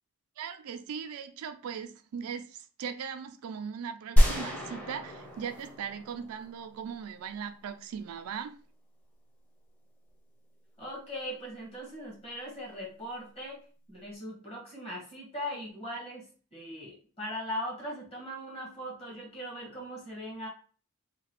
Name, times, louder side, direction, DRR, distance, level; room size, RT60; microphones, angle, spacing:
voice 1, 0.4-8.6, right 7 dB, 75° right, 0.3 m, -39 dB
sound 1, 4.2-7.1, equal, 5° left, 0.7 m, -27 dB
voice 2, 10.8-13.6 13.9-16.3 16.5-20.5, equal, 25° left, 1.1 m, -39 dB
2.9 x 2.3 x 2.9 m
head